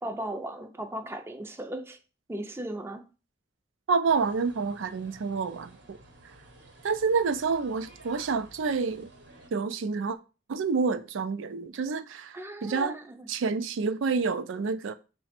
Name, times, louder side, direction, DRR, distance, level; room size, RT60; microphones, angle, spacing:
voice 1, 0.0-2.0 2.3-3.0 12.3-13.3, right 1 dB, 15° right, 0.4 m, -37 dB
voice 2, 3.9-6.0 6.8-9.1 9.5-10.2 10.5-12.9 13.3-14.9, right 4 dB, 90° right, 0.4 m, -28 dB
sound 1, 4.0-9.5, right 2 dB, 65° right, 0.9 m, -53 dB
5.7 x 2.1 x 4.2 m
head